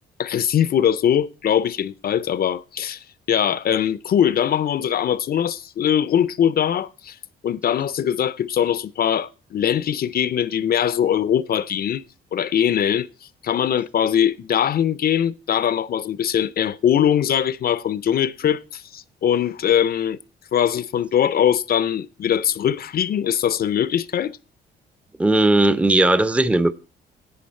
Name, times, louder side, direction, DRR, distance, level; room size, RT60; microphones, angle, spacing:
voice 1, 0.2-7.2 7.4-12.0 12.3-13.1 13.4-20.2 20.5-24.4, left 9 dB, 50° left, 0.5 m, -21 dB
voice 2, 25.2-26.7, right 2 dB, 5° right, 0.5 m, -17 dB
10.5 x 8.6 x 4.2 m
cardioid pair, 90°, 20 cm